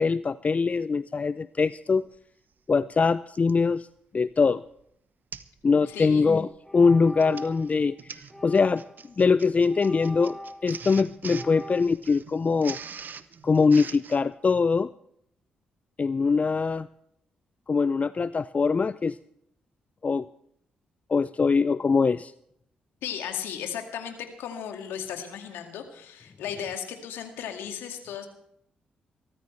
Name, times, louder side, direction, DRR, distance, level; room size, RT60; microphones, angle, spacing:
voice 1, 0.0-2.1 2.7-3.9 4.1-4.6 5.6-6.5 6.7-8.8 9.2-10.4 10.6-12.8 13.4-14.9 16.0-16.9 17.7-19.2 20.0-20.3 21.1-22.3, left 4 dB, 35° left, 17 dB, 0.4 m, -23 dB
Printer, 2.2-2.3 3.3-3.6 4.2-4.4 4.7-4.8 5.3-5.6 5.9-6.2 7.0-14.2, right 6 dB, 50° right, 0.9 m, -43 dB
sound 1, 5.8-6.0 6.6-7.7 8.3-9.1 9.7-10.9 11.3-11.9, equal, 10° left, 1.3 m, -42 dB
voice 2, 5.9-6.3 23.0-28.3, left 8 dB, 75° left, 5 dB, 2.0 m, -35 dB
23.0 x 13.5 x 3.3 m, 0.71 s
hypercardioid pair, 40°, 4 cm